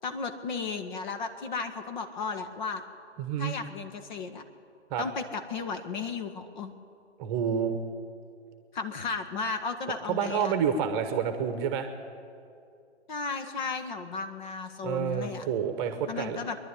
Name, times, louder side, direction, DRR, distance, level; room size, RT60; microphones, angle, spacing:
voice 1, 0.0-2.8 3.4-4.4 5.0-6.7 8.7-10.6 13.1-15.4 16.0-16.6, left 4 dB, 40° left, 7 dB, 1.8 m, -34 dB
voice 2, 3.2-3.5 4.9-5.0 7.2-7.8 10.1-11.9 14.8-16.4, right 7 dB, 20° right, 8 dB, 1.2 m, -29 dB
24.0 x 11.0 x 9.9 m, 2.4 s
figure-of-eight pair, 135°, 35 cm